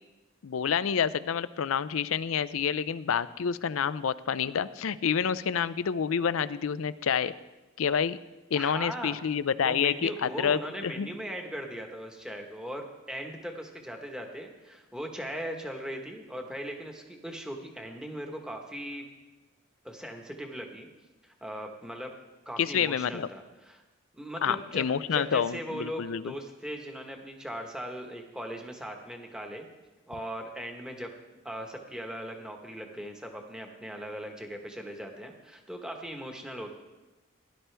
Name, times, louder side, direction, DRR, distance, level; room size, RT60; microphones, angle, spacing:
voice 1, 0.4-7.3 7.8-8.2 8.5-11.1 22.6-23.3 24.4-26.3, left 7 dB, 85° left, 16 dB, 0.5 m, -28 dB
voice 2, 8.5-9.2 9.6-19.1 19.8-20.9 21.2-22.1 22.4-23.8 24.1-29.7 30.1-31.1 31.4-36.7, equal, 5° right, 2 dB, 1.2 m, -39 dB
17.0 x 11.5 x 3.4 m, 1.1 s
head